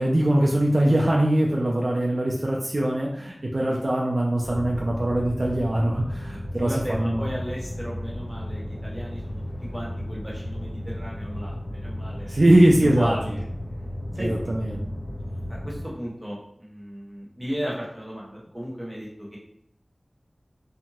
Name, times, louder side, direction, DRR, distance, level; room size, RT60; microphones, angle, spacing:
voice 1, 0.0-7.3 12.3-13.1 14.1-14.8, right 1 dB, 60° right, -2 dB, 0.4 m, -22 dB
sound 1, 4.4-15.9, left 1 dB, 85° left, 1.2 m, -34 dB
voice 2, 6.6-9.4 9.7-12.3 12.8-13.5 14.1-14.5 15.5-19.4, equal, 15° right, -5 dB, 1.0 m, -34 dB
2.8 x 2.2 x 2.9 m, 0.70 s
wide cardioid pair, 55°, 0 cm